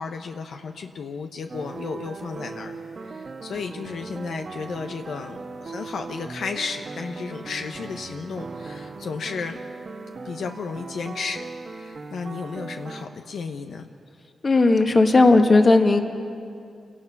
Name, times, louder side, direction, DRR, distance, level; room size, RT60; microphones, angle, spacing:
voice 1, 0.0-9.6 10.2-13.9, left 5 dB, 75° left, 5 dB, 1.0 m, -33 dB
sound 1, 1.5-13.1, right 4 dB, 45° right, 1.3 m, -38 dB
voice 2, 14.4-16.0, left 3 dB, 35° left, 4 dB, 1.8 m, -16 dB
28.0 x 17.5 x 6.0 m, 2.4 s
wide cardioid pair, 110°, 0 cm